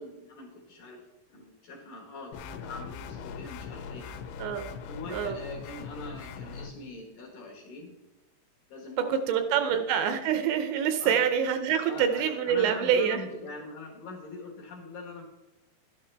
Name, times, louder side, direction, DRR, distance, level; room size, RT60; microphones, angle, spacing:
voice 1, 0.0-4.3 4.9-8.0 8.7-9.8 11.0-11.5 11.8-15.2, left 2 dB, 60° left, -1 dB, 2.5 m, -42 dB
sound 1, 2.3-6.7, left 6 dB, 80° left, 2.8 m, -41 dB
voice 2, 9.1-13.2, right 8 dB, 80° right, 8 dB, 2.7 m, -26 dB
12.0 x 9.6 x 3.3 m, 1.0 s
omnidirectional pair, 5.4 m